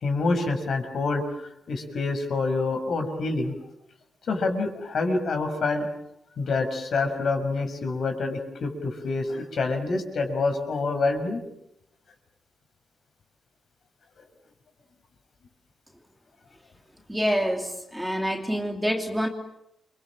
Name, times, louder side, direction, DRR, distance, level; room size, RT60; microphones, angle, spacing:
voice 1, 0.0-1.2 1.7-3.5 4.3-5.9 6.4-11.4, left 3 dB, 55° left, 6 dB, 6.2 m, -27 dB
voice 2, 17.1-19.3, equal, 5° right, 2 dB, 2.9 m, -27 dB
30.0 x 25.0 x 7.6 m, 0.81 s
wide cardioid pair, 145°, 0 cm